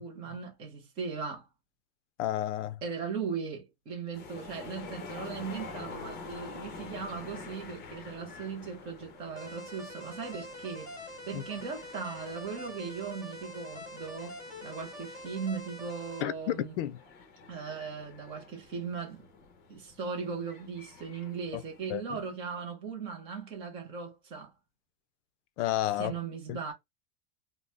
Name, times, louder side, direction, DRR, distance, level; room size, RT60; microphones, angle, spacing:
voice 1, 0.0-1.5 2.8-11.0 11.2-16.7 17.5-19.3 19.7-24.5 26.0-26.7, right 5 dB, 15° right, 0.4 m, -38 dB
voice 2, 2.2-2.8 11.3-11.4 16.2-17.0 21.5-21.6 21.9-22.2 25.6-26.1 26.5-26.6, left 13 dB, 65° left, 0.5 m, -31 dB
sound 1, 4.1-21.9, left 4 dB, 40° left, 0.8 m, -48 dB
sound 2, 9.4-16.2, left 1 dB, 10° left, 1.6 m, -45 dB
2.7 x 2.0 x 3.2 m
supercardioid pair, 170°, 40 cm